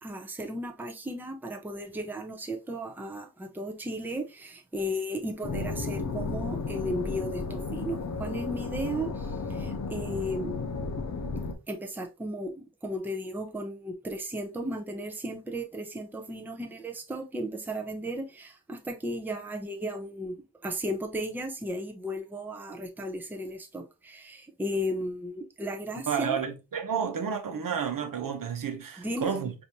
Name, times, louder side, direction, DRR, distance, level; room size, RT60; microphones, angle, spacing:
voice 1, 0.0-10.6 11.7-26.4 29.0-29.3, equal, 5° right, 0.5 m, -35 dB
sound 1, 5.4-11.5, left 4 dB, 50° left, 0.8 m, -33 dB
voice 2, 26.1-29.5, right 7 dB, 65° right, 0.9 m, -31 dB
4.9 x 2.7 x 2.8 m
wide cardioid pair, 160°, 35 cm